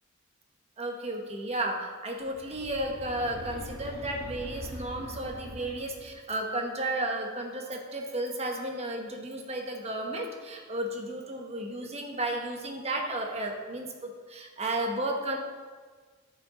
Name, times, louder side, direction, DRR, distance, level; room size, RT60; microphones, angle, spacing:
voice 1, 0.8-15.4, right 1 dB, 30° right, 2 dB, 1.1 m, -33 dB
sound 1, 2.3-6.2, equal, 85° right, 1.4 m, -43 dB
13.5 x 5.7 x 3.8 m, 1.5 s
head